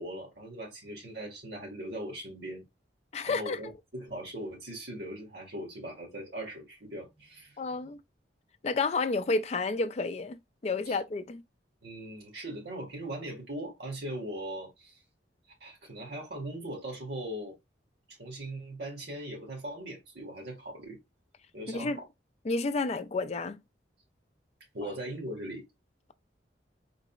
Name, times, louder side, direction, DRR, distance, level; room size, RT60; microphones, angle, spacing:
voice 1, 0.0-2.7 3.3-7.9 10.8-11.0 11.8-15.0 15.6-17.6 18.1-21.0 21.5-22.0 24.7-25.6, right 1 dB, 65° right, 1.7 m, -40 dB
voice 2, 3.1-3.6 7.6-8.0 8.6-11.4 21.7-22.0 22.4-23.6 24.8-24.9, left 3 dB, 35° left, 0.4 m, -31 dB
4.1 x 3.9 x 2.3 m
head